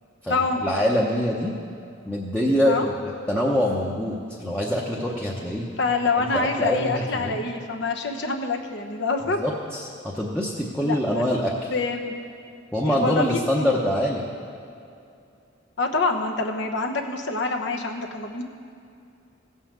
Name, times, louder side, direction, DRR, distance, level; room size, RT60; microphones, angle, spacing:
voice 1, 0.2-1.5 2.1-5.7 6.2-7.3 9.2-9.8 10.1-11.7 12.7-14.2, equal, 5° left, -5 dB, 0.8 m, -24 dB
voice 2, 5.8-9.4 10.8-11.2 11.7-12.1 12.9-13.7 15.8-18.4, left 3 dB, 60° left, 3 dB, 1.1 m, -26 dB
16.0 x 5.6 x 7.4 m, 2.6 s
head